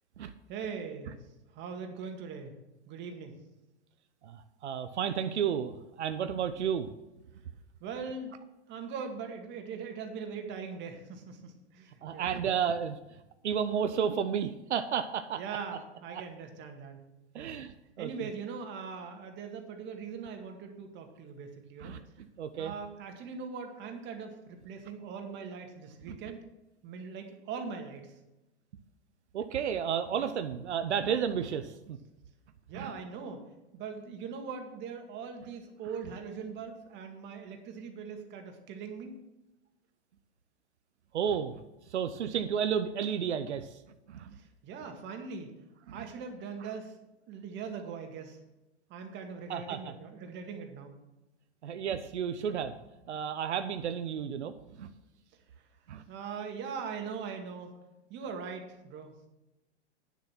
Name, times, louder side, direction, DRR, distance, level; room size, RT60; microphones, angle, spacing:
voice 1, 0.5-1.2 1.5-2.5 2.9-3.4 7.8-8.3 8.7-12.3 15.4-17.0 17.4-17.6 18.0-22.0 22.6-26.4 26.8-28.1 32.7-33.4 33.7-39.2 44.4-45.5 45.9-46.9 47.3-48.4 48.9-50.9 56.1-57.7 58.1-59.1, right 5 dB, 35° right, 4 dB, 1.9 m, -41 dB
voice 2, 4.2-6.9 12.0-13.0 13.4-15.6 16.1-16.2 17.3-18.3 21.8-22.7 26.1-26.2 29.3-32.0 32.7-32.9 41.1-41.6 41.9-43.8 44.1-44.4 45.9-46.0 46.6-46.7 49.5-49.9 51.6-52.8 53.1-54.5 54.8-54.9 55.9-56.0, right 8 dB, 85° right, 9 dB, 0.8 m, -32 dB
9.7 x 6.9 x 6.0 m, 0.98 s
hypercardioid pair, 120°, 33 cm